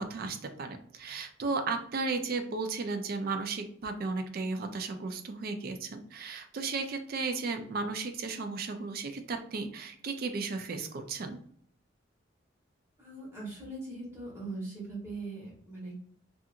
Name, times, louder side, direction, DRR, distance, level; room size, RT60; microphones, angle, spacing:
voice 1, 0.0-11.4, right 4 dB, 50° right, 7 dB, 0.4 m, -34 dB
voice 2, 13.0-16.0, right 2 dB, 15° right, -6 dB, 1.0 m, -40 dB
2.7 x 2.4 x 2.4 m, 0.62 s
head